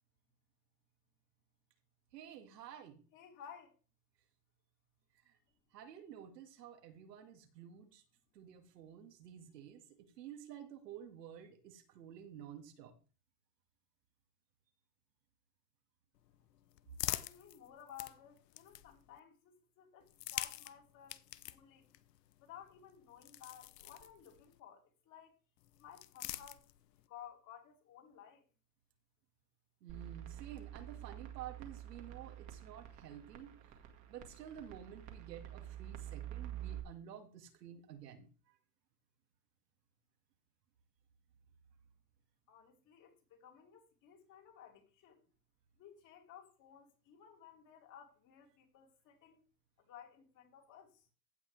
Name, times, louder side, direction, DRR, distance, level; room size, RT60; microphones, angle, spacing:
voice 1, 2.1-3.0 5.3-5.4 5.7-8.0 8.3-12.9 29.8-33.6 34.1-38.3, right 9 dB, 85° right, 2.5 m, -51 dB
voice 2, 3.1-3.8 17.0-21.9 22.4-25.4 25.8-26.6 27.1-28.4 42.5-45.3 45.8-49.4 49.8-51.1, left 9 dB, 40° left, 3.0 m, -56 dB
sound 1, 16.2-19.2 20.0-24.6 25.6-27.1, left 14 dB, 85° left, 0.8 m, -46 dB
sound 2, 29.9-36.8, right 11 dB, 35° right, 2.0 m, -48 dB
15.5 x 5.9 x 3.4 m
supercardioid pair, 130°, 47 cm